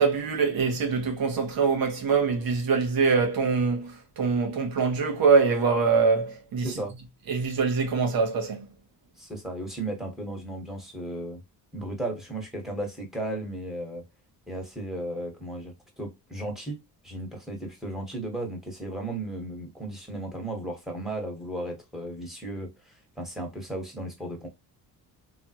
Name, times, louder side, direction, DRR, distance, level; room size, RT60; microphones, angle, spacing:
voice 1, 0.0-6.7 7.3-8.6, right 5 dB, 60° right, 1.2 m, -24 dB
voice 2, 9.2-11.4 11.7-14.0 14.5-16.8 17.0-24.5, right 1 dB, ahead, 1.5 m, -35 dB
3.3 x 2.3 x 2.9 m
cardioid pair, 90°, 40 cm